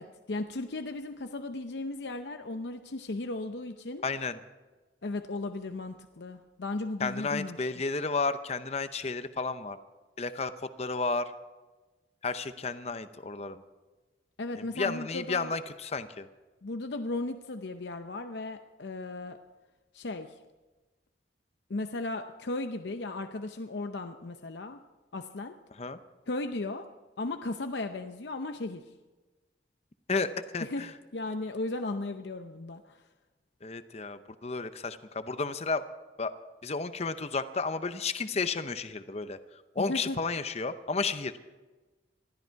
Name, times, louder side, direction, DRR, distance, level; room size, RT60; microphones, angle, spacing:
voice 1, 0.0-4.0 5.0-7.6 14.4-15.5 16.6-19.4 19.9-20.4 21.7-24.8 25.1-25.6 26.3-26.9 27.2-28.8 30.6-33.0 39.9-40.2, left 2 dB, 70° left, 7 dB, 0.7 m, -36 dB
voice 2, 4.0-4.4 7.0-9.8 10.2-10.5 10.8-11.3 12.2-13.6 14.6-16.3 25.8-26.0 30.1-30.9 33.6-35.8 36.2-36.3 36.6-39.4 39.7-41.3, left 4 dB, 35° left, 11 dB, 0.7 m, -32 dB
20.0 x 13.5 x 4.6 m, 1.2 s
head